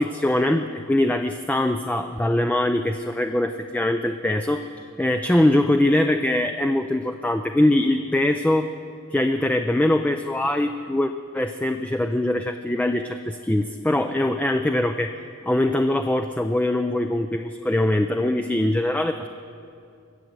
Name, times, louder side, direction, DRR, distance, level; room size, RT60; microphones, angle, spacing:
voice 1, 0.0-8.7 9.1-15.1 15.5-19.3, left 1 dB, 5° left, 6 dB, 0.3 m, -22 dB
22.5 x 7.6 x 8.0 m, 2.4 s
head